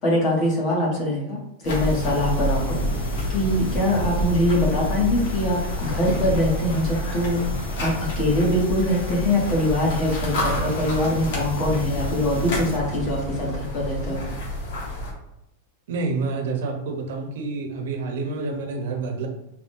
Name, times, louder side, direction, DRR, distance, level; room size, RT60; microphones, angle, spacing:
voice 1, 0.0-2.8 3.3-7.4 7.8-14.2, left 1 dB, 30° left, -4 dB, 1.7 m, -23 dB
sound 1, 1.6-15.1, equal, 60° left, 1.7 m, -28 dB
voice 2, 15.9-19.3, right 3 dB, 75° right, 3 dB, 1.0 m, -28 dB
4.9 x 2.8 x 3.7 m, 0.88 s
supercardioid pair, 165°, 0 cm